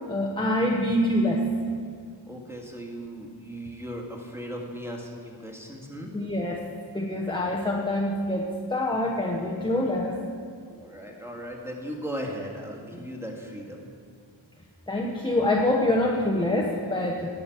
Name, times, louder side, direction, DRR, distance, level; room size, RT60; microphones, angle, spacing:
voice 1, 0.1-1.4 6.1-6.6 6.9-10.2 14.9-17.4, left 1 dB, 10° left, 0 dB, 0.9 m, -25 dB
voice 2, 2.3-6.1 10.7-13.9, equal, 5° right, -1 dB, 1.8 m, -37 dB
11.0 x 6.6 x 5.9 m, 2.2 s
wide cardioid pair, 50°, 47 cm